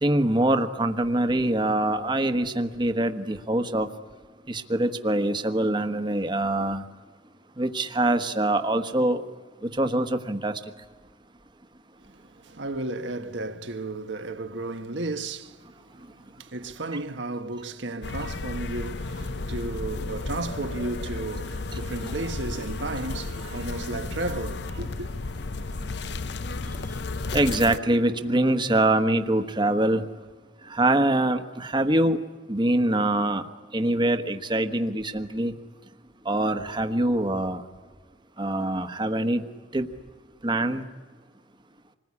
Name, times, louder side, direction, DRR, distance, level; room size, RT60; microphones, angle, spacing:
voice 1, 0.0-3.9 4.5-6.8 7.6-9.2 9.8-10.5 27.3-30.0 30.7-32.2 32.5-33.4 33.7-35.5 36.2-37.6 38.4-39.4 39.7-39.9 40.4-40.8, right 1 dB, 25° right, 1.3 m, -24 dB
voice 2, 12.0-25.1, right 2 dB, 75° right, 1.5 m, -34 dB
sound 1, 18.0-27.8, left 3 dB, 65° left, 0.8 m, -33 dB
27.0 x 20.5 x 9.7 m
head